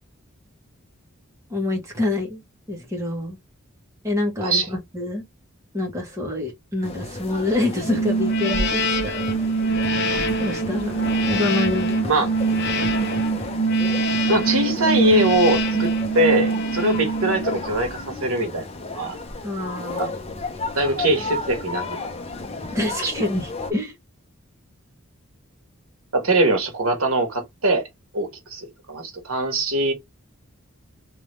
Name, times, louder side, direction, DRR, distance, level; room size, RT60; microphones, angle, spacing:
voice 1, 1.5-2.4 2.7-3.4 4.0-5.2 5.7-9.4 10.4-11.0 11.3-12.2 19.4-20.1 22.7-23.9, left 2 dB, 15° right, 1.6 m, -26 dB
sound 1, 6.8-23.7, left 2 dB, 30° left, 0.8 m, -33 dB
sound 2, 7.8-17.8, right 2 dB, 55° left, 0.9 m, -23 dB
voice 2, 14.3-18.7 18.9-19.2 19.9-20.1 20.8-22.0 23.0-23.1 26.1-27.9 28.1-29.9, right 1 dB, 80° right, 1.7 m, -22 dB
3.5 x 3.0 x 3.2 m
head